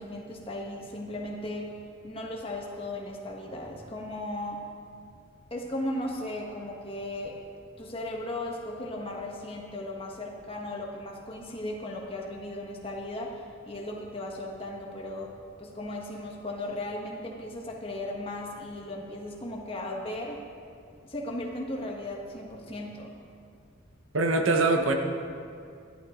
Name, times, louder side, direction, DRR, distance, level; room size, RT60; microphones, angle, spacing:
voice 1, 0.0-1.7 2.0-4.6 5.5-7.4 7.8-20.4 21.0-23.1, left 1 dB, 25° left, -1 dB, 1.5 m, -36 dB
voice 2, 24.1-24.9, right 3 dB, 80° right, 3 dB, 1.1 m, -23 dB
14.0 x 11.5 x 3.9 m, 2.3 s
head